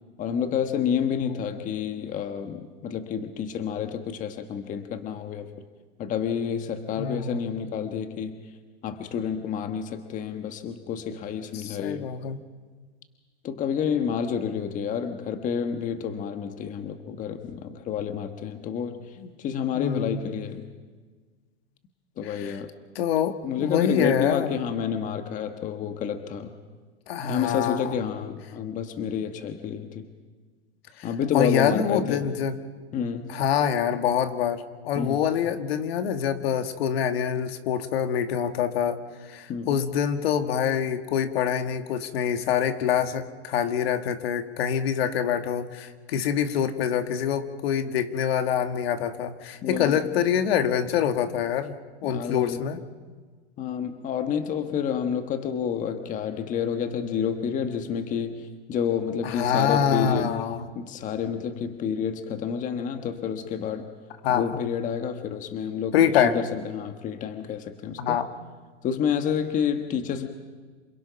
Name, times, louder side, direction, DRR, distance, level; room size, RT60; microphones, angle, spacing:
voice 1, 0.2-5.5 6.0-8.4 8.8-12.1 13.4-20.7 22.2-22.7 23.4-26.5 27.2-30.1 31.0-32.3 32.9-33.4 34.9-35.3 39.5-39.9 49.6-50.0 52.0-52.6 53.6-60.4 60.7-63.9 64.3-68.2 68.8-70.3, left 7 dB, 25° left, 7 dB, 1.3 m, -29 dB
voice 2, 7.0-7.5 11.5-12.4 19.2-19.3 19.7-20.3 22.2-22.6 23.0-24.6 27.1-27.9 31.0-31.1 31.3-32.6 33.3-39.0 39.3-51.8 52.0-52.8 59.2-60.7 64.2-64.6 65.9-66.4 68.0-68.3, left 8 dB, 65° left, 8 dB, 1.9 m, -25 dB
27.5 x 22.0 x 5.8 m, 1.4 s
supercardioid pair, 145°, 33 cm